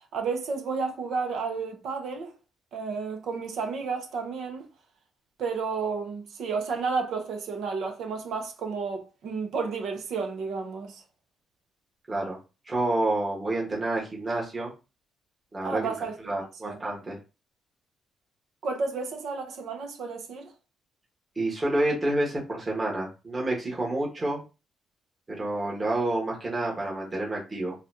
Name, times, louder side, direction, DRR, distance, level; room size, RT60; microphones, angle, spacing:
voice 1, 0.1-2.3 2.7-4.6 5.4-11.0 15.6-16.2 16.6-16.8 18.6-20.5, right 4 dB, 70° right, 0.9 m, -31 dB
voice 2, 12.1-12.4 12.7-14.7 15.5-15.9 16.3-17.2 21.3-24.4 25.3-27.7, right 2 dB, 25° right, 1.5 m, -28 dB
3.9 x 2.5 x 2.9 m
cardioid pair, 90°, 0 cm